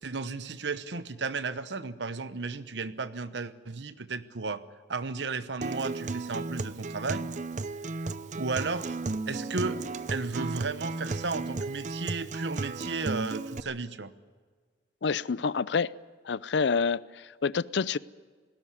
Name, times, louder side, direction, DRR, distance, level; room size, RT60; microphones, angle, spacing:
voice 1, 0.0-4.6 4.9-7.3 8.4-9.0 9.3-9.8 10.1-14.1, right 4 dB, 85° right, 1.0 m, -34 dB
Acoustic guitar, 5.6-13.6, right 3 dB, 45° right, 0.7 m, -34 dB
voice 2, 15.0-15.9 16.2-18.0, left 5 dB, 85° left, 0.5 m, -28 dB
18.5 x 16.5 x 9.7 m
head